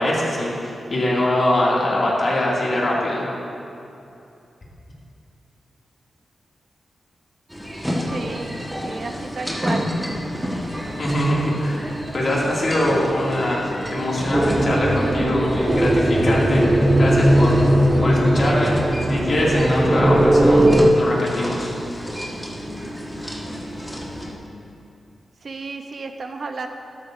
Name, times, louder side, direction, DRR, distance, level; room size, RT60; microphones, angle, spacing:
voice 1, 0.0-3.2 11.0-11.8 12.1-16.7 17.0-17.6 18.0-20.7 20.9-21.7, left 1 dB, 50° left, -5 dB, 2.5 m, -22 dB
sound 1, 7.5-24.3, equal, ahead, 1.5 m, -31 dB
voice 2, 8.0-9.9 25.4-26.7, right 3 dB, 55° right, 5 dB, 0.8 m, -32 dB
sound 2, 14.3-20.9, right 1 dB, 20° right, 0.7 m, -18 dB
12.5 x 12.5 x 2.7 m, 2.7 s
cardioid pair, 90°, 0 cm